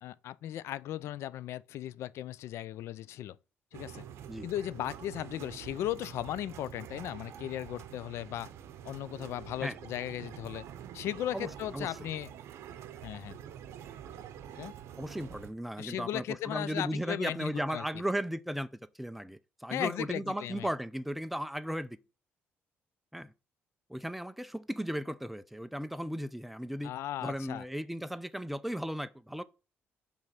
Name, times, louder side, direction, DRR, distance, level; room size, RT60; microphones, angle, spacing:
voice 1, 0.0-3.4 3.7-4.0 4.4-8.5 8.8-10.6 10.9-12.3 13.0-13.4 14.6-14.7 15.8-17.8 19.7-20.7 26.8-27.6, left 12 dB, 70° left, 0.3 m, -37 dB
sound 1, 3.7-15.5, right 10 dB, 75° right, 0.7 m, -47 dB
voice 2, 11.3-12.1 15.0-22.0 23.1-23.3 23.9-26.9 27.2-29.4, equal, 5° right, 0.4 m, -36 dB
5.2 x 3.5 x 5.7 m
cardioid pair, 125°, 5 cm